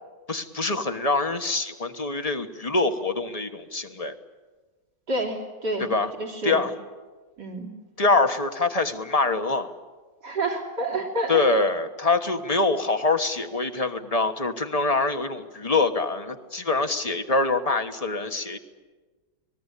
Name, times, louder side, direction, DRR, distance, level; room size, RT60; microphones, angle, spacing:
voice 1, 0.3-4.1 5.8-6.1 6.4-6.7 8.0-9.7 11.3-18.6, left 3 dB, 25° left, 7 dB, 1.3 m, -24 dB
voice 2, 5.1-5.9 6.2-6.6 7.4-7.7 10.2-11.4, right 2 dB, 75° right, 0 dB, 3.9 m, -28 dB
29.5 x 20.0 x 8.4 m, 1.3 s
omnidirectional pair, 1.8 m